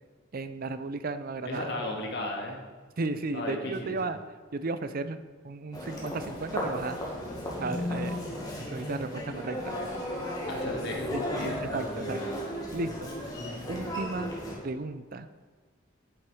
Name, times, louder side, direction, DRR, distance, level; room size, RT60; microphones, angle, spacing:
voice 1, 0.3-1.7 3.0-4.2 4.5-5.2 5.4-7.0 7.6-8.2 8.7-9.7 11.1-12.2 12.7-13.1 13.7-14.3 14.6-15.3, right 3 dB, 45° right, 12 dB, 0.5 m, -34 dB
voice 2, 1.5-2.6 3.3-4.0 10.5-11.6, left 1 dB, 60° left, 0 dB, 2.0 m, -35 dB
Human voice, 5.7-14.6, equal, 20° left, 1.9 m, -35 dB
8.7 x 7.7 x 4.9 m, 1.4 s
head